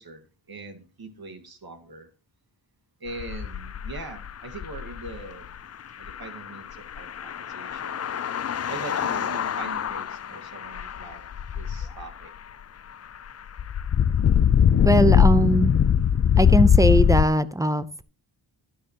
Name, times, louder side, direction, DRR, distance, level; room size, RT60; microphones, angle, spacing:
voice 1, 0.0-2.1 3.0-5.6 6.0-8.1 8.7-11.2 11.5-12.3, right 3 dB, 55° right, 6 dB, 1.9 m, -41 dB
sound 1, 3.1-5.2 6.0-12.0 13.6-17.2, left 8 dB, 35° left, 0.4 m, -22 dB
voice 2, 14.8-15.8 16.4-18.0, right 1 dB, 10° right, 15 dB, 0.6 m, -21 dB
12.0 x 10.0 x 3.0 m, 0.37 s
wide cardioid pair, 80°, 44 cm